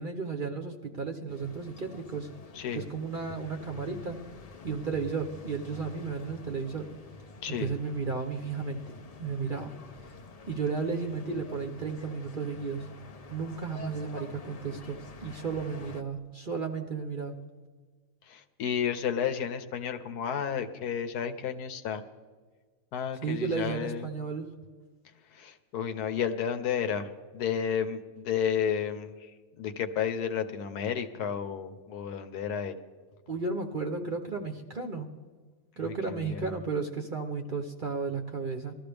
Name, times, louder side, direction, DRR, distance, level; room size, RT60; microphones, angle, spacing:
voice 1, 0.0-2.3 2.7-4.2 4.6-6.9 7.5-8.9 9.2-9.7 10.5-12.9 13.3-17.3 23.2-24.5 33.3-35.1 35.8-38.7, right 4 dB, 45° right, 4 dB, 0.8 m, -33 dB
sound 1, 1.3-16.0, left 4 dB, 50° left, 0.4 m, -48 dB
voice 2, 2.5-2.8 7.4-7.7 18.3-22.0 22.9-24.1 25.3-32.8 35.8-36.6, left 8 dB, 80° left, 8 dB, 1.3 m, -32 dB
20.0 x 13.5 x 3.4 m, 1.5 s
omnidirectional pair, 1.6 m